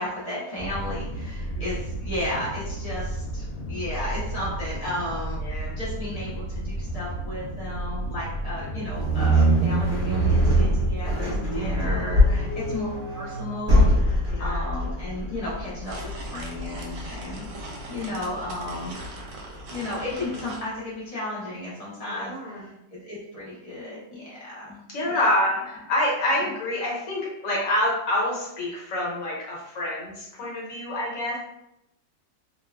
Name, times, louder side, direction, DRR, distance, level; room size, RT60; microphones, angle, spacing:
voice 1, 0.0-12.9 13.1-19.0 19.7-25.2, left 1 dB, 85° left, -8 dB, 0.3 m, -34 dB
sound 1, 0.6-10.7, right 1 dB, 70° left, 0.9 m, -33 dB
voice 2, 5.4-5.8 11.4-12.5 14.3-14.7 22.1-22.7 24.9-25.5 25.9-31.4, left 1 dB, 55° left, -5 dB, 1.2 m, -27 dB
sound 2, 8.9-20.1, equal, 35° right, 1.0 m, -24 dB
sound 3, 15.4-20.7, right 2 dB, 80° right, 1.2 m, -41 dB
3.0 x 2.2 x 2.2 m, 0.84 s
omnidirectional pair, 1.9 m